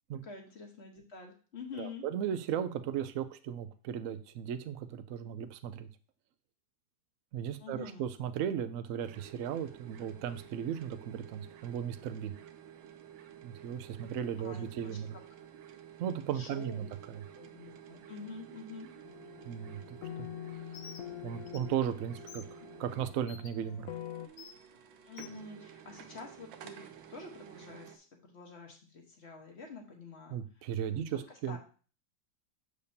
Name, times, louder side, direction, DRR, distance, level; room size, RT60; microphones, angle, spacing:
voice 1, 0.2-2.0 7.6-8.1 14.4-15.2 16.3-16.9 17.3-18.9 25.0-31.6, left 4 dB, 40° left, 2 dB, 1.3 m, -48 dB
voice 2, 1.7-5.9 7.3-12.4 13.4-15.1 16.0-17.2 19.4-20.3 21.2-22.4 22.8-23.9 30.3-31.6, right 9 dB, 70° right, 10 dB, 0.8 m, -36 dB
sound 1, 9.0-28.0, right 9 dB, 85° right, 1.4 m, -52 dB
sound 2, 19.0-24.3, left 12 dB, 70° left, 1.0 m, -45 dB
Bird, 20.7-21.0 21.5-21.6 22.3-22.4 23.3-23.5 24.4-24.5 25.2-25.3, left 6 dB, 90° left, 1.5 m, -49 dB
6.8 x 6.5 x 2.8 m, 0.38 s
omnidirectional pair, 1.9 m